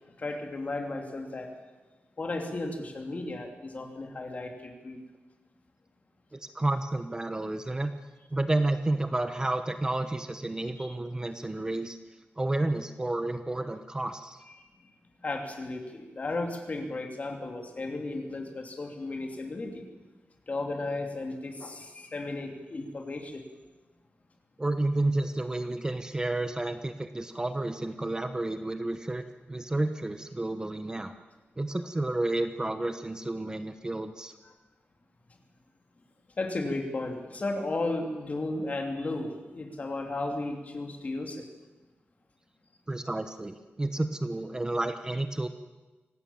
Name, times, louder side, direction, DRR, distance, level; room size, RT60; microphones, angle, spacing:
voice 1, 0.2-1.5 2.2-5.0 10.8-10.9 15.2-20.0 20.5-23.4 34.4-34.5 36.4-41.4, left 2 dB, 40° left, 3 dB, 3.2 m, -34 dB
voice 2, 6.3-7.9 8.3-12.0 12.4-14.4 24.6-29.2 29.5-31.1 31.6-34.3 42.9-45.5, right 2 dB, 20° right, 9 dB, 1.0 m, -31 dB
25.5 x 18.0 x 7.3 m, 1.2 s
wide cardioid pair, 130°, 4 cm